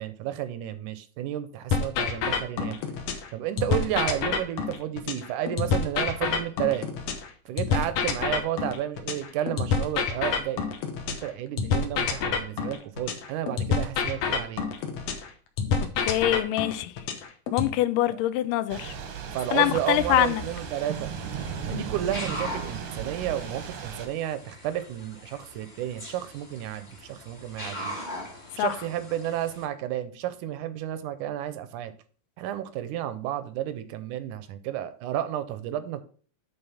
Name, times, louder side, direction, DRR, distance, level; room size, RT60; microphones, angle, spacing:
voice 1, 0.0-2.8 3.3-6.9 7.5-10.6 11.1-14.6 18.1-18.2 19.3-21.1 21.6-28.0 28.5-31.9 32.4-36.0, right 12 dB, 80° right, 2.0 m, -32 dB
sound 1, 1.7-3.3 3.6-7.3 7.6-11.3 11.6-15.3 15.6-17.7, left 5 dB, 65° left, 1.7 m, -27 dB
voice 2, 16.0-16.9 17.5-18.9 19.5-20.4 21.7-21.8 28.6-28.7, left 13 dB, 85° left, 2.3 m, -24 dB
Thunder / Rain, 18.7-24.1, right 7 dB, 65° right, 1.5 m, -36 dB
sound 2, 19.8-29.7, equal, 20° left, 1.3 m, -41 dB
8.9 x 3.9 x 5.7 m
omnidirectional pair, 3.8 m